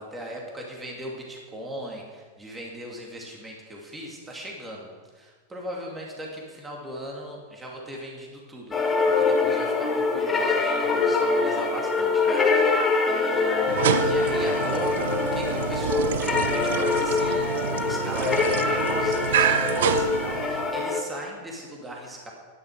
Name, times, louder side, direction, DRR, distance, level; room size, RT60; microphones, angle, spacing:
voice 1, 0.0-4.9 5.1-17.5 17.8-22.3, equal, 10° right, -2 dB, 2.6 m, -38 dB
sound 1, 8.7-21.0, left 4 dB, 15° left, 1.7 m, -24 dB
sound 2, 13.6-20.8, right 9 dB, 60° right, 0.6 m, -28 dB
11.5 x 11.0 x 6.5 m, 1.5 s
figure-of-eight pair, 90°, 0 cm